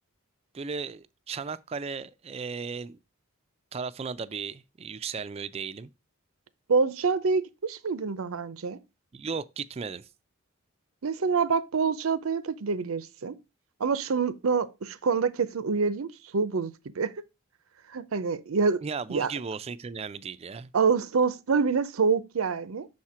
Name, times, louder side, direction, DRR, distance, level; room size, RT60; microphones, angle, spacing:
voice 1, 0.5-3.0 3.7-5.9 9.1-10.1 18.8-20.7, right 5 dB, 30° right, 0.3 m, -35 dB
voice 2, 6.7-8.8 11.0-13.4 13.8-17.1 17.9-18.8 19.1-19.3 20.7-22.9, right 5 dB, 90° right, 0.6 m, -26 dB
6.4 x 4.3 x 4.8 m
head